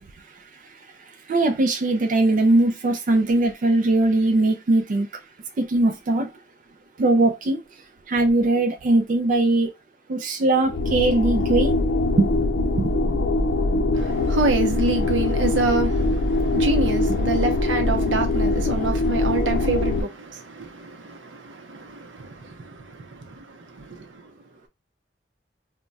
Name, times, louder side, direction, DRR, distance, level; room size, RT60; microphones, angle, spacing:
voice 1, 0.2-5.1 5.6-6.3 7.0-9.7 10.1-11.8 12.2-12.4 12.8-13.2 13.7-13.8, right 2 dB, 45° right, 0.4 m, -21 dB
sound 1, 10.6-20.0, left 2 dB, 85° left, 0.5 m, -22 dB
voice 2, 13.9-24.3, right 2 dB, 85° right, 0.6 m, -27 dB
2.2 x 2.1 x 3.8 m
head